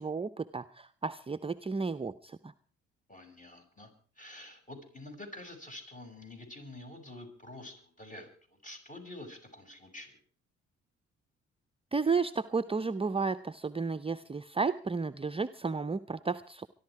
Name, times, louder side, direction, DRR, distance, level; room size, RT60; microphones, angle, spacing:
voice 1, 0.0-2.5 11.9-16.7, right 4 dB, 15° right, 9 dB, 0.7 m, -32 dB
voice 2, 3.1-3.9 4.2-8.3 8.6-10.2, left 1 dB, 25° left, 4 dB, 6.6 m, -47 dB
24.5 x 12.0 x 4.8 m, 0.44 s
hypercardioid pair, 50°, 33 cm